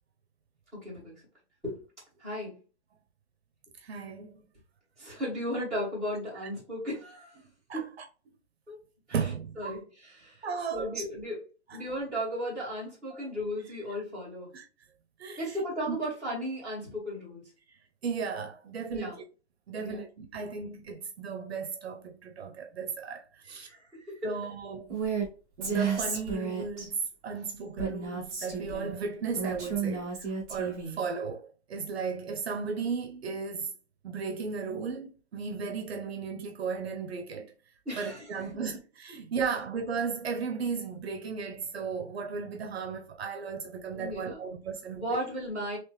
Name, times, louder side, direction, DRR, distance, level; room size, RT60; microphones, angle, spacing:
voice 1, 0.7-1.1 1.6-1.7 2.2-2.6 5.0-7.3 7.7-7.9 8.7-8.8 9.6-10.4 10.7-11.4 11.7-14.5 15.4-17.4 18.9-19.2 19.8-20.0 23.7-24.2 37.9-38.3 43.9-44.5 44.9-45.8, equal, ahead, 2.0 m, -35 dB
voice 2, 3.8-4.5 7.7-8.0 9.1-9.8 10.4-11.0 11.7-11.8 13.1-13.3 14.5-14.6 15.2-16.0 17.7-19.2 19.7-23.7 24.2-24.9 25.6-33.7 34.0-37.5 38.0-45.2, right 5 dB, 60° right, 0.8 m, -35 dB
Female speech woman speaking, 24.9-25.3 25.6-26.9 27.8-28.9 29.4-31.0, right 5 dB, 15° right, 1.0 m, -32 dB
3.5 x 3.0 x 3.1 m
hypercardioid pair, 180°, 34 cm